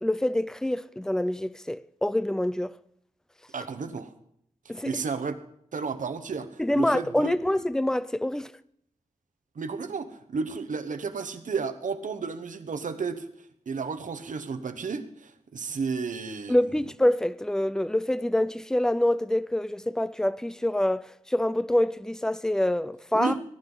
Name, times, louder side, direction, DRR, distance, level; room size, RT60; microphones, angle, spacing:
voice 1, 0.0-2.7 4.7-5.0 6.6-8.5 16.5-23.3, left 1 dB, 5° left, 0.5 m, -26 dB
voice 2, 3.5-4.1 4.6-5.4 5.7-7.3 9.5-13.3 13.7-16.6 23.1-23.4, right 5 dB, 75° right, 1.2 m, -32 dB
20.5 x 10.5 x 4.0 m
cardioid pair, 55°, 13 cm